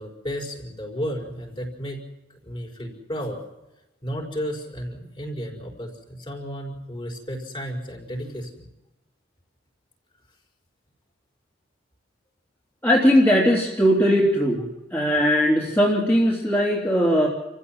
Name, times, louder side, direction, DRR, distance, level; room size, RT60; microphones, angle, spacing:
voice 1, 0.0-2.0 2.4-3.4 4.0-8.7, equal, 30° left, 0 dB, 5.0 m, -33 dB
voice 2, 12.8-14.6 14.9-17.3, equal, 10° left, -4 dB, 3.3 m, -19 dB
28.5 x 15.5 x 7.7 m, 0.99 s
head